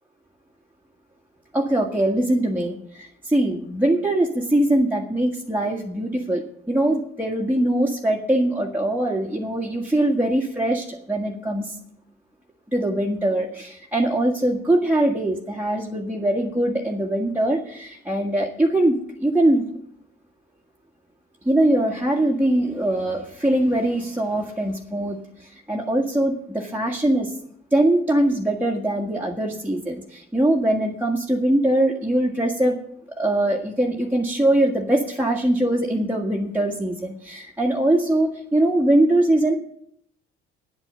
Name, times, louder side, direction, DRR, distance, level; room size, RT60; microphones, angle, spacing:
voice 1, 1.5-11.7 12.7-19.6 21.4-25.2 25.4-27.3 27.7-32.8 33.2-39.6, right 1 dB, 5° right, -2 dB, 1.7 m, -22 dB
9.8 x 8.9 x 6.8 m, 0.70 s
hypercardioid pair, 45°, 30 cm